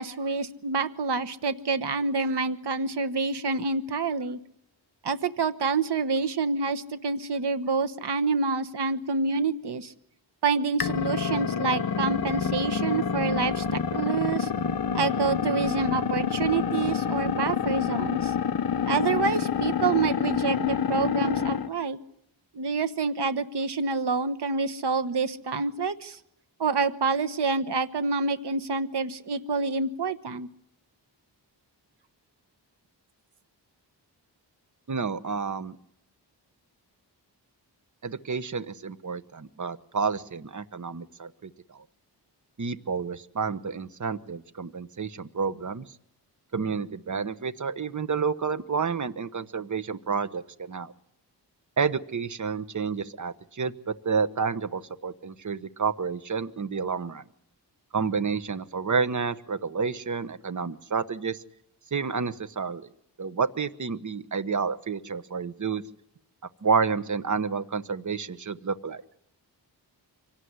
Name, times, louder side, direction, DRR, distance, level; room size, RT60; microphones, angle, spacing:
voice 1, 0.0-4.4 5.0-9.9 10.4-14.5 14.9-18.3 18.9-22.0 22.5-26.2 26.6-30.5, right 4 dB, 65° right, 10 dB, 1.2 m, -27 dB
sound 1, 10.8-21.7, left 7 dB, 55° left, 1.0 m, -27 dB
voice 2, 34.9-35.8 38.0-41.8 42.6-45.8 46.5-50.9 51.8-57.2 57.9-61.4 61.9-62.9 63.2-65.8 66.6-69.0, right 5 dB, 45° right, 14 dB, 1.1 m, -30 dB
25.0 x 18.0 x 9.6 m, 0.76 s
wide cardioid pair, 110°, 43 cm